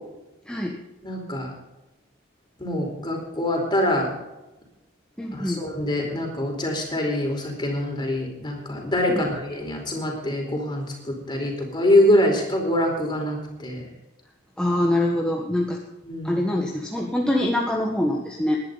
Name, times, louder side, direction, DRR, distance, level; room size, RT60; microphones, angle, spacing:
voice 1, 1.0-1.5 2.6-4.1 5.3-13.9 16.0-16.4, left 1 dB, 25° left, 1 dB, 4.5 m, -24 dB
voice 2, 5.2-5.6 9.1-9.3 14.6-15.8 16.2-18.6, left 1 dB, 5° left, -1 dB, 1.5 m, -24 dB
20.5 x 11.0 x 4.1 m, 0.98 s
head